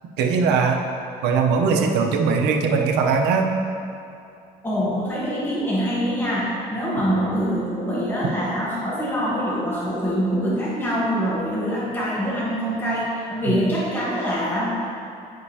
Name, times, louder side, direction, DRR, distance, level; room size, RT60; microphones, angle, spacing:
voice 1, 0.2-0.8 1.2-3.5, right 5 dB, 90° right, 2 dB, 0.7 m, -20 dB
voice 2, 4.6-14.7, equal, 10° left, -7 dB, 1.3 m, -24 dB
9.5 x 5.2 x 2.8 m, 2.5 s
cardioid pair, 110°, 17 cm